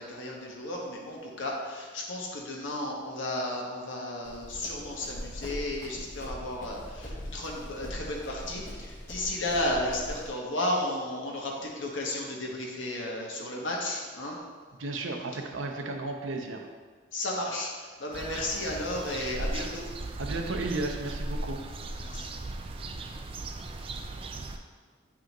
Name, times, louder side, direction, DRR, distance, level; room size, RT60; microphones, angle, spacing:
voice 1, 0.0-14.4 17.1-17.7 18.0-19.8 22.0-22.3, left 1 dB, 80° left, -2 dB, 1.3 m, -33 dB
Run, 4.2-10.3, equal, 45° left, 1.3 m, -41 dB
voice 2, 14.8-16.6 20.2-21.6, right 2 dB, 85° right, 3 dB, 0.8 m, -33 dB
sound 1, 18.1-24.6, right 2 dB, 30° right, 0.3 m, -37 dB
9.0 x 4.8 x 3.0 m, 1.5 s
head